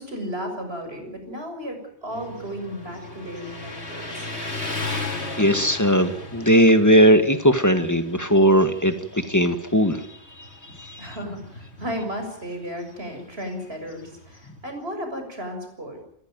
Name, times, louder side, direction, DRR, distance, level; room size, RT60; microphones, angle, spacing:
voice 1, 0.0-4.3 11.0-16.0, equal, 65° right, 5 dB, 6.9 m, -34 dB
Motorcycle, 2.1-14.7, left 2 dB, 85° left, 4.2 m, -37 dB
voice 2, 5.4-10.1 10.8-11.0, equal, 15° left, 9 dB, 1.9 m, -18 dB
29.5 x 15.0 x 9.2 m, 0.71 s
omnidirectional pair, 1.1 m